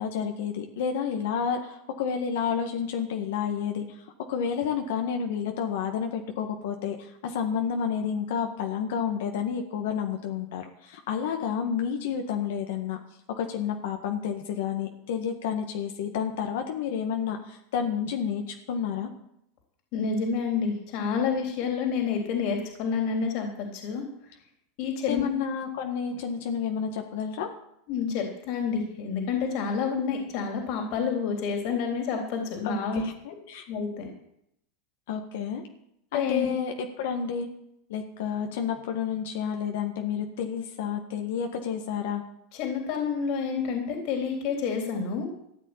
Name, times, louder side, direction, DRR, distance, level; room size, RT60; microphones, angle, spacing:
voice 1, 0.0-13.0 13.4-19.1 25.1-27.5 32.6-33.7 35.1-35.6 36.1-37.5 37.9-42.2, left 7 dB, 75° left, 3 dB, 1.8 m, -30 dB
voice 2, 19.9-24.1 24.8-25.2 27.9-33.0 33.7-34.1 36.1-36.5 42.5-45.3, left 6 dB, 60° left, 2 dB, 3.6 m, -29 dB
14.5 x 6.4 x 9.9 m, 0.76 s
supercardioid pair, 115°, 0 cm